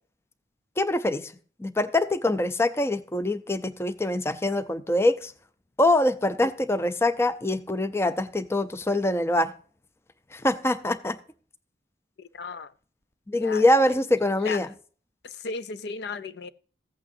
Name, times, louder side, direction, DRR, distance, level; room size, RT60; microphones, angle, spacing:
voice 1, 0.8-1.3 1.6-5.3 5.8-9.5 10.3-11.2 13.3-14.7, left 1 dB, 15° left, 0.4 m, -24 dB
voice 2, 12.2-12.7 13.4-14.0 14.4-14.6 15.2-16.5, left 4 dB, 70° left, 0.5 m, -36 dB
15.0 x 8.6 x 2.6 m
head